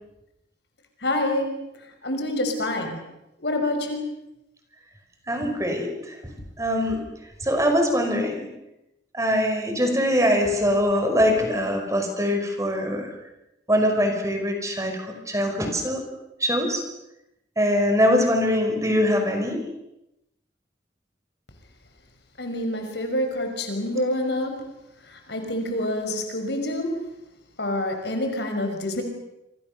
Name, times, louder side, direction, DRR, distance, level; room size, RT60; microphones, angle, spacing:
voice 1, 1.0-1.5 2.0-3.0 3.4-4.1 22.4-24.6 25.3-27.0 27.6-29.0, left 1 dB, 70° left, 5 dB, 5.8 m, -27 dB
voice 2, 5.3-6.3 6.6-7.0 7.4-8.5 9.1-13.1 13.7-16.0 16.4-16.8 17.6-19.6, equal, 15° right, 4 dB, 5.4 m, -23 dB
27.5 x 26.0 x 6.8 m, 0.88 s
head